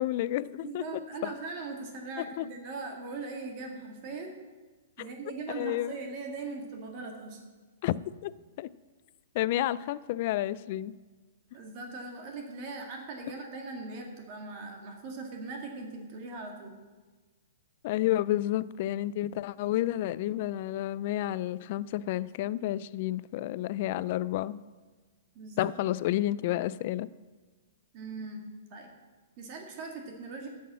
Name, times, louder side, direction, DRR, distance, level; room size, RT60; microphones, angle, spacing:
voice 1, 0.0-0.8 1.2-1.3 2.4-2.5 5.6-5.9 7.8-8.3 8.6-8.7 9.3-10.9 17.8-24.6 25.6-27.1, left 14 dB, 45° left, 18 dB, 0.4 m, -30 dB
voice 2, 0.6-4.3 5.0-7.4 11.5-16.7 25.4-25.7 27.9-28.4 28.7-28.9 29.4-30.5, right 3 dB, 40° right, 2 dB, 1.8 m, -40 dB
11.0 x 6.4 x 7.5 m, 1.3 s
hypercardioid pair, 150°, 0 cm